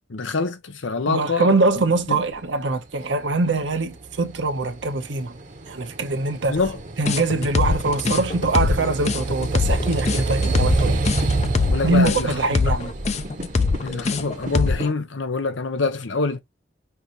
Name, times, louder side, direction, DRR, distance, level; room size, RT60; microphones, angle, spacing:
voice 1, 0.1-1.5 2.1-2.2 6.5-6.8 11.7-12.7 13.8-16.4, left 3 dB, 90° left, 0.8 m, -25 dB
voice 2, 1.1-5.3 5.7-6.6 7.0-11.0 11.8-12.9, right 3 dB, 75° right, 0.9 m, -23 dB
sound 1, 3.5-14.8, right 2 dB, 45° right, 0.9 m, -28 dB
sound 2, 7.1-14.9, left 4 dB, 40° left, 0.5 m, -22 dB
5.7 x 2.7 x 2.9 m
head